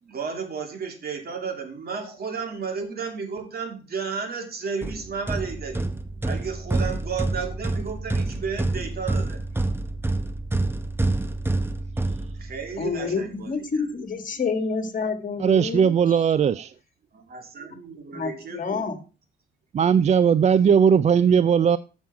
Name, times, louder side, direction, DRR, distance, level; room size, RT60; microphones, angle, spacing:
voice 1, 0.0-5.8 6.2-9.4 12.4-13.6 17.1-18.9, right 5 dB, 50° right, 2.8 m, -33 dB
sound 1, 4.8-12.8, right 2 dB, 10° right, 0.8 m, -27 dB
voice 2, 12.8-15.9 18.1-19.0, left 5 dB, 40° left, 2.0 m, -28 dB
voice 3, 15.4-16.7 19.7-21.8, right 7 dB, 35° right, 0.4 m, -18 dB
7.4 x 7.2 x 4.7 m
cardioid pair, 90°, 20 cm